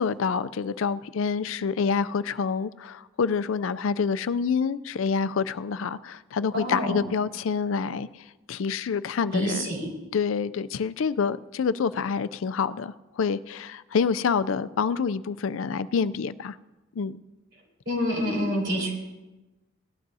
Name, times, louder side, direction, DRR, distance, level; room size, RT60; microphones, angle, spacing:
voice 1, 0.0-8.1 8.5-9.7 10.1-16.6 17.0-17.2, left 5 dB, 75° left, 15 dB, 0.4 m, -27 dB
voice 2, 6.5-7.0 9.3-9.9 17.9-18.9, equal, 60° right, -3 dB, 4.4 m, -27 dB
18.5 x 12.0 x 2.7 m, 1.1 s
head